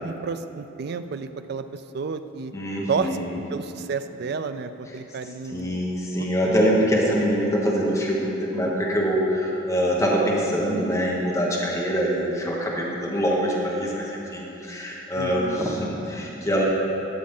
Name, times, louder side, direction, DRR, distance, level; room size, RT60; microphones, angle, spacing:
voice 1, 0.0-2.5 2.9-3.2 3.5-5.8 6.4-6.6 15.2-15.6, right 5 dB, 50° right, 10 dB, 0.3 m, -31 dB
voice 2, 2.5-3.3 5.5-16.6, equal, 15° left, -4 dB, 1.2 m, -24 dB
12.5 x 7.4 x 3.8 m, 3.0 s
head